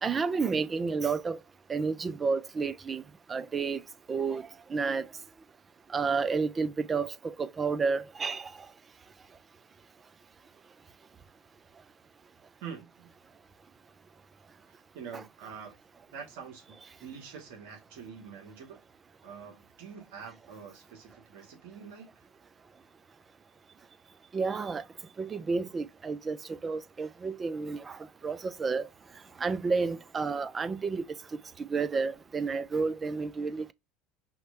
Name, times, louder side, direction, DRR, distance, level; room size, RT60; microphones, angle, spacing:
voice 1, 0.0-1.4 1.7-3.0 3.3-3.8 4.1-4.4 4.7-5.1 5.9-8.4 24.3-24.8 25.2-26.4 26.6-28.0 28.2-28.8 29.4-31.0 31.7-33.7, right 4 dB, 25° right, 0.6 m, -30 dB
voice 2, 12.6-13.1 14.7-15.8 16.1-16.8 17.0-18.8 19.2-22.1, right 6 dB, 75° right, 1.8 m, -45 dB
5.8 x 3.2 x 2.7 m
supercardioid pair, 90°, 0 cm